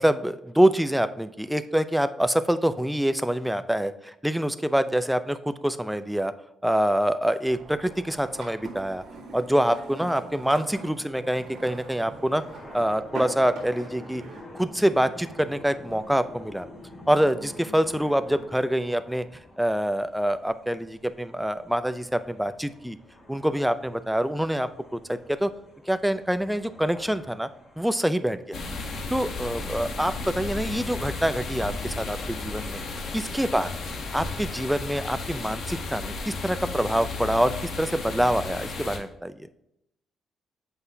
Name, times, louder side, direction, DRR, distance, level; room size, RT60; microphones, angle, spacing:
voice 1, 0.0-6.3 6.6-9.0 9.3-12.4 12.7-14.2 14.5-16.7 17.1-19.2 19.6-23.0 23.3-25.5 25.9-27.5 27.8-28.6 29.1-32.8 33.1-33.7 34.1-39.3, equal, 5° right, 12 dB, 0.4 m, -25 dB
sound 1, 7.5-14.4, right 3 dB, 80° right, 1.9 m, -42 dB
sound 2, 11.6-29.2, left 1 dB, 35° left, 2.4 m, -48 dB
sound 3, 28.5-39.0, left 3 dB, 65° left, 1.1 m, -34 dB
7.9 x 5.6 x 2.7 m, 0.80 s
cardioid pair, 90°, 0 cm